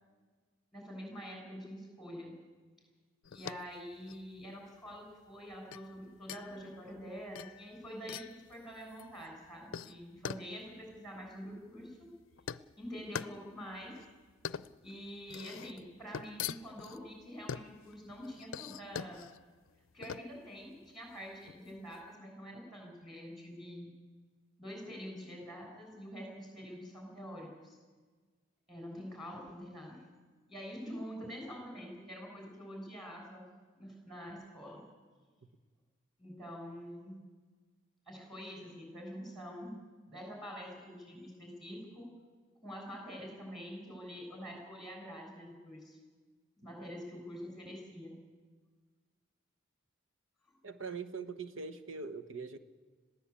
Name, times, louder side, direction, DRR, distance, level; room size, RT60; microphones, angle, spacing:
voice 1, 0.7-2.3 3.3-8.2 8.5-12.1 12.8-14.0 14.8-19.2 19.9-23.9 24.6-27.8 28.7-30.0 30.5-33.4 33.7-34.8 36.2-37.2 38.1-39.8 40.1-42.1 42.6-46.0 46.6-48.2 50.4-50.6, equal, ahead, 1 dB, 6.9 m, -46 dB
sound 1, 3.2-22.0, left 7 dB, 90° left, 0.5 m, -45 dB
voice 2, 50.6-52.6, right 4 dB, 80° right, 11 dB, 1.2 m, -42 dB
21.5 x 15.5 x 8.5 m, 1.4 s
head